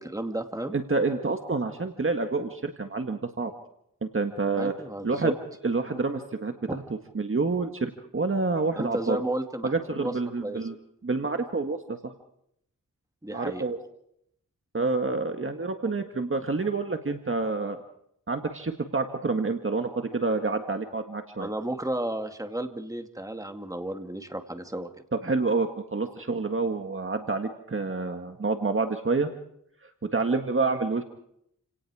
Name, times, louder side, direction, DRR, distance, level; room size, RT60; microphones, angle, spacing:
voice 1, 0.0-0.8 4.6-5.3 6.7-6.8 8.8-10.1 10.4-10.6 13.2-13.7 21.4-24.9, right 1 dB, 10° right, 6 dB, 2.3 m, -33 dB
voice 2, 0.7-3.5 4.0-4.7 5.0-5.3 5.6-6.8 7.1-9.2 9.6-10.7 11.0-12.1 13.3-13.8 14.7-17.8 18.3-21.5 25.1-29.3 30.1-31.0, right 3 dB, 40° right, 5 dB, 1.8 m, -28 dB
29.0 x 18.5 x 4.9 m, 0.73 s
wide cardioid pair, 80°, 32 cm